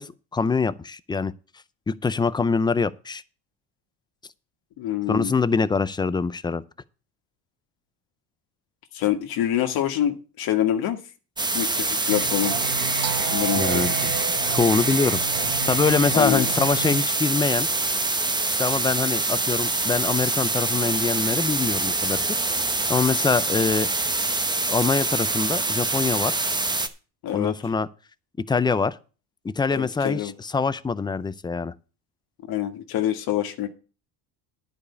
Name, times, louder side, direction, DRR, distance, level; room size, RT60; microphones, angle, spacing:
voice 1, 0.0-1.3 1.9-3.2 5.1-6.6 13.5-14.1 14.5-15.2 15.7-17.7 18.6-22.2 22.9-23.9 24.7-26.4 27.3-27.9 28.5-29.0 29.4-31.7, left 4 dB, 10° left, 0.4 m, -24 dB
voice 2, 4.8-5.3 8.9-11.0 11.5-12.6 13.2-14.1 16.1-16.5 27.2-27.5 29.7-30.3 32.5-33.7, left 12 dB, 60° left, 1.6 m, -26 dB
sound 1, 11.4-26.9, right 2 dB, 10° right, 0.9 m, -25 dB
Singing, 12.1-17.1, right 8 dB, 60° right, 1.2 m, -31 dB
10.5 x 5.1 x 8.4 m
cardioid pair, 120°, 41 cm